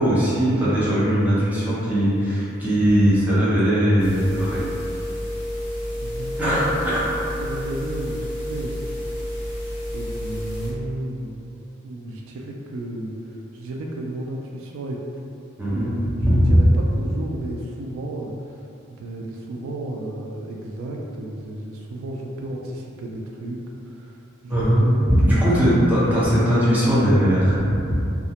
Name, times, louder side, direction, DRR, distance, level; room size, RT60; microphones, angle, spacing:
voice 1, 0.0-4.6 6.4-7.1 15.6-15.9 16.2-16.6 24.5-28.0, equal, 10° right, -11 dB, 0.6 m, -19 dB
sound 1, 4.0-10.7, equal, 30° left, 0.9 m, -30 dB
voice 2, 6.0-6.3 6.6-7.1 7.4-8.8 9.9-15.0 15.7-18.6 18.9-25.9, right 1 dB, 85° right, -1 dB, 0.3 m, -33 dB
2.3 x 2.1 x 2.8 m, 2.6 s
head